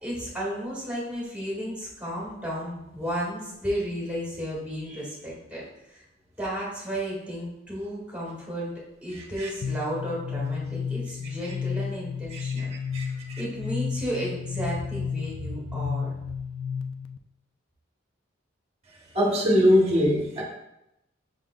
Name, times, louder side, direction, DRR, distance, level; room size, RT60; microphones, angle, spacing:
voice 1, 0.0-5.6 5.9-6.0 6.4-8.7 9.0-12.7 13.4-16.2, equal, 5° right, -7 dB, 1.7 m, -33 dB
sound 1, 9.6-17.2, left 6 dB, 80° left, 0.3 m, -32 dB
voice 2, 12.3-12.7 12.9-13.0 19.1-20.4, equal, 35° right, -3 dB, 0.9 m, -22 dB
6.4 x 3.7 x 2.3 m, 0.86 s
head